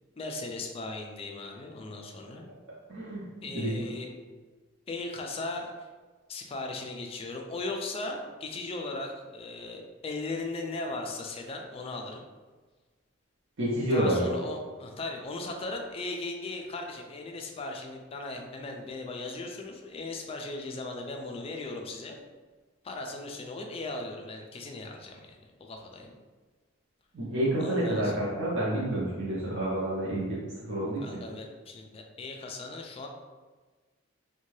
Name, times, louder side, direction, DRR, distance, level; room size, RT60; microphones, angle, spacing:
voice 1, 0.2-2.5 3.4-4.1 4.9-5.9 6.3-12.2 13.9-22.2 22.8-26.1 27.6-28.2 31.0-33.1, left 2 dB, 30° left, 2 dB, 0.3 m, -38 dB
voice 2, 2.9-3.3 3.5-3.9 13.6-14.3 27.1-30.4 30.7-31.2, right 1 dB, 65° right, -7 dB, 0.6 m, -29 dB
2.7 x 2.2 x 3.1 m, 1.4 s
head